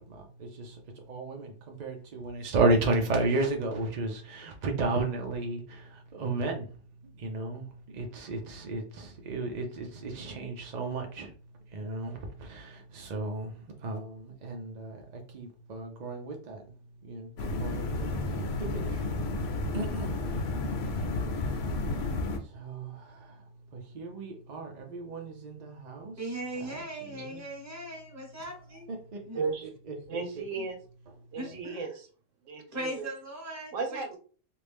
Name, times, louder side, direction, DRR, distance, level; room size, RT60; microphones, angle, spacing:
voice 1, 0.1-0.7 1.1-6.7 7.2-7.6 7.9-11.3 11.7-13.5 13.8-15.0 15.3-16.6 17.1-18.1 18.6-19.2 19.7-20.2 22.5-23.1 23.7-26.1 27.2-27.4 28.9-29.2, right 2 dB, 50° right, 0.5 m, -33 dB
sound 1, 17.4-22.4, left 2 dB, 70° left, 1.0 m, -31 dB
voice 2, 26.2-28.9 29.3-29.4 31.4-31.8 32.7-34.0, right 1 dB, 15° right, 1.0 m, -39 dB
voice 3, 29.3-29.7 30.1-30.8 31.3-32.1 32.4-33.1 33.7-34.2, right 4 dB, 75° right, 1.0 m, -35 dB
3.0 x 2.6 x 3.3 m
omnidirectional pair, 1.3 m